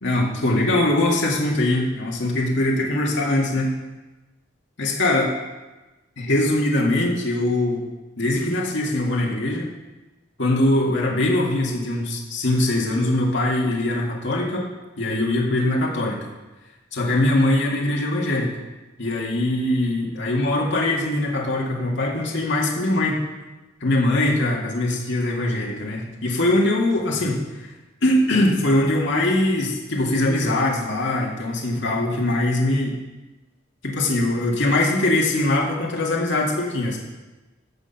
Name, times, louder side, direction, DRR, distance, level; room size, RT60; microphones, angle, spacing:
voice 1, 0.0-3.7 4.8-5.3 6.2-7.8 8.2-9.7 10.4-14.7 15.0-16.3 16.9-18.5 19.0-23.2 23.8-27.7 28.0-33.0 33.8-37.0, left 1 dB, 65° left, -2 dB, 1.9 m, -22 dB
12.5 x 4.3 x 7.8 m, 1.1 s
head